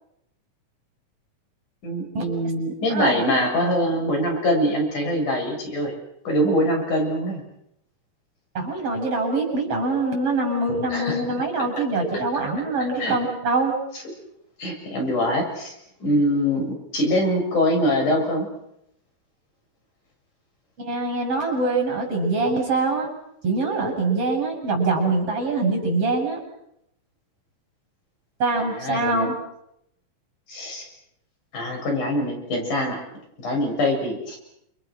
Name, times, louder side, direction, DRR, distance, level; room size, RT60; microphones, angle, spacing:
voice 1, 1.8-5.9 6.3-7.4 10.9-11.4 13.0-13.2 14.6-15.7 16.0-18.5 28.8-29.3 30.5-30.9 31.5-33.0 33.4-34.4, equal, 65° left, 1 dB, 8.9 m, -23 dB
voice 2, 2.9-3.2 8.6-13.7 20.8-23.1 23.4-26.4 28.4-29.4, right 3 dB, 45° right, 2 dB, 8.9 m, -24 dB
29.5 x 29.0 x 6.4 m, 0.79 s
omnidirectional pair, 3.7 m